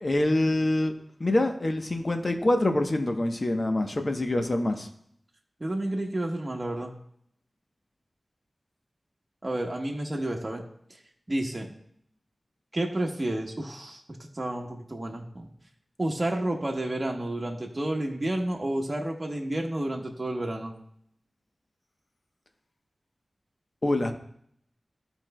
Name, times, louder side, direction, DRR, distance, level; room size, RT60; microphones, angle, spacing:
voice 1, 0.0-0.9 1.2-4.9 23.8-24.1, left 1 dB, 45° left, 5 dB, 0.9 m, -25 dB
voice 2, 5.6-6.9 9.4-10.6 11.3-11.7 12.7-14.0 14.3-15.5 16.0-20.7, right 1 dB, 35° right, 0 dB, 1.1 m, -30 dB
13.5 x 4.5 x 2.2 m, 0.69 s
wide cardioid pair, 60°, 0 cm